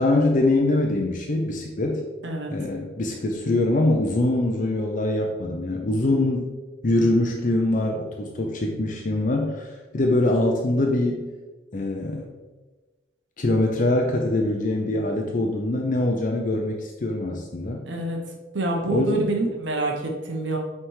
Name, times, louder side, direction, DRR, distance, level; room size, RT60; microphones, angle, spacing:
voice 1, 0.0-2.0 2.5-6.5 6.8-11.3 11.7-12.3 13.4-17.8 18.9-19.3, left 2 dB, 40° left, 1 dB, 0.6 m, -23 dB
voice 2, 17.9-18.2 18.5-20.6, right 2 dB, 65° right, 1 dB, 1.1 m, -26 dB
6.0 x 3.5 x 4.7 m, 1.2 s
head